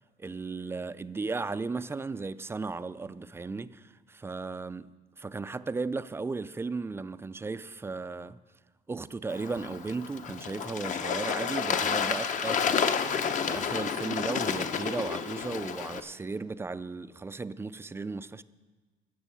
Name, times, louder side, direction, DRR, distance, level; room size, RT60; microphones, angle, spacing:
voice 1, 0.2-8.4 8.9-12.8 13.4-18.4, right 3 dB, 15° right, 0.3 m, -35 dB
Bird / Water, 9.3-16.0, left 6 dB, 50° left, 0.8 m, -30 dB
13.5 x 6.2 x 8.4 m
cardioid pair, 110°, 17 cm